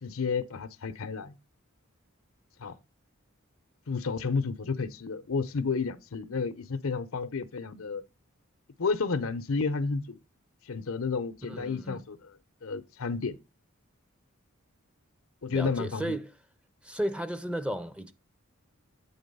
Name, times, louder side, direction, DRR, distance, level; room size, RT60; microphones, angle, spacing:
voice 1, 0.0-1.3 2.6-2.8 3.9-8.0 8.8-10.2 10.7-12.2 12.6-13.4 15.4-16.2, left 4 dB, 75° left, 0.7 m, -31 dB
voice 2, 11.4-12.0 15.5-16.3 16.8-18.1, right 1 dB, 5° right, 0.6 m, -34 dB
8.6 x 4.0 x 5.4 m
head